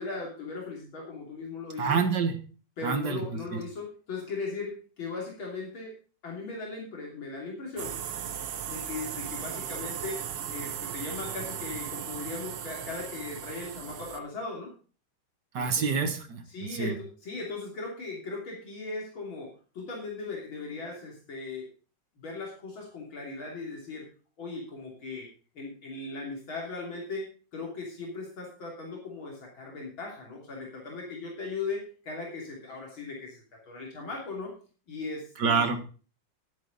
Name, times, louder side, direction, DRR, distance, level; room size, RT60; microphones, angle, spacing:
voice 1, 0.0-2.0 2.8-5.9 6.2-8.0 8.7-10.2 10.5-14.7 15.6-15.9 16.5-21.7 22.2-24.1 24.4-25.3 25.6-34.5 34.9-35.7, left 3 dB, 75° left, -2 dB, 3.7 m, -38 dB
voice 2, 1.8-2.4 2.8-3.3 15.5-16.4 16.7-17.0 35.4-35.8, right 5 dB, 55° right, 7 dB, 2.1 m, -26 dB
sound 1, 7.8-14.2, right 9 dB, 90° right, 1.9 m, -37 dB
12.0 x 10.5 x 4.0 m, 0.37 s
omnidirectional pair, 2.2 m